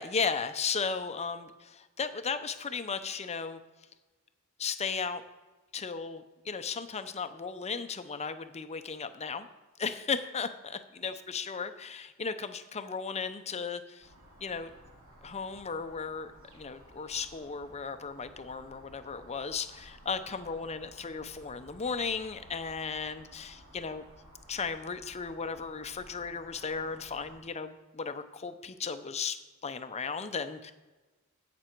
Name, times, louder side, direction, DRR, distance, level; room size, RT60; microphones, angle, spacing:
voice 1, 0.0-3.6 4.6-5.2 5.7-9.5 9.8-14.1 14.4-14.7 15.2-24.0 24.5-29.4 29.6-30.7, left 5 dB, 30° left, 10 dB, 0.6 m, -35 dB
sound 1, 14.0-27.4, equal, 65° right, 3.0 m, -55 dB
16.5 x 6.1 x 4.6 m, 1.2 s
head